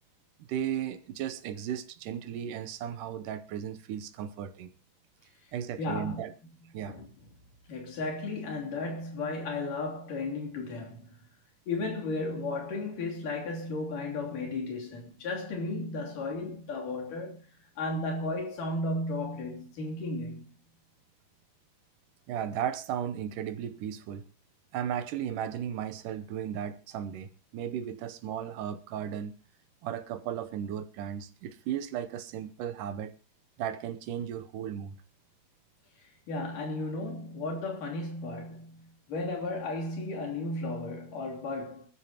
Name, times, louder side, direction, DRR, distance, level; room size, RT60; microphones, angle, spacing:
voice 1, 0.5-4.7 5.5-6.3 6.7-7.0 22.3-24.2 24.7-29.3 29.8-33.1 33.6-35.0, right 9 dB, 70° right, 2.2 m, -35 dB
voice 2, 5.8-6.2 6.9-7.1 7.7-11.2 11.7-17.5 17.8-20.5 36.3-41.9, left 2 dB, 60° left, 4.6 m, -34 dB
23.5 x 13.0 x 2.9 m
omnidirectional pair, 4.4 m